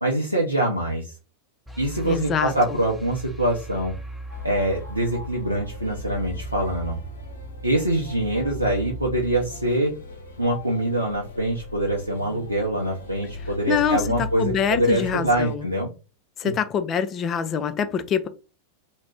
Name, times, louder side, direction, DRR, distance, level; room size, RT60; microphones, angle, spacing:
voice 1, 0.0-1.2 1.8-4.0 4.4-7.0 7.6-9.9 10.4-15.9, right 1 dB, 85° right, 0.5 m, -24 dB
sound 1, 1.7-10.8, right 2 dB, 5° right, 0.7 m, -39 dB
voice 2, 2.0-2.8 13.7-15.7 16.4-18.3, left 7 dB, 30° left, 0.4 m, -25 dB
sound 2, 4.3-15.6, left 3 dB, 65° left, 0.6 m, -39 dB
2.4 x 2.1 x 3.3 m
figure-of-eight pair, 90°, 0 cm